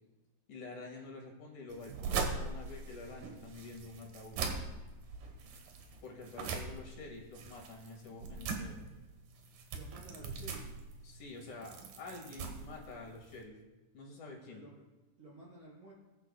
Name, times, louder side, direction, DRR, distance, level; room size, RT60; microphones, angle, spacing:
voice 1, 0.5-4.4 6.0-8.9 11.0-13.6 13.9-14.6, left 3 dB, 70° left, 0 dB, 3.2 m, -48 dB
sound 1, 1.7-13.4, right 4 dB, 90° right, 2.9 m, -41 dB
voice 2, 9.7-10.8 14.4-14.8 15.2-15.9, right 1 dB, 25° right, -6 dB, 4.0 m, -52 dB
20.5 x 10.0 x 2.2 m, 1.1 s
omnidirectional pair, 3.7 m